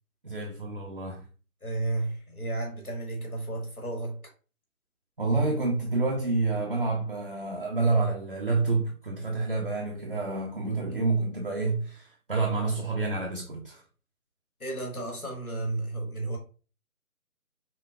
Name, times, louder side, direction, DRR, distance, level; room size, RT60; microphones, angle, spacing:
voice 1, 0.2-1.3 5.2-13.8, right 3 dB, 40° right, 0.5 m, -28 dB
voice 2, 1.6-4.2 10.9-11.1 14.6-16.4, right 2 dB, 80° left, 1.8 m, -33 dB
5.7 x 2.2 x 2.4 m
figure-of-eight pair, 150°, 43 cm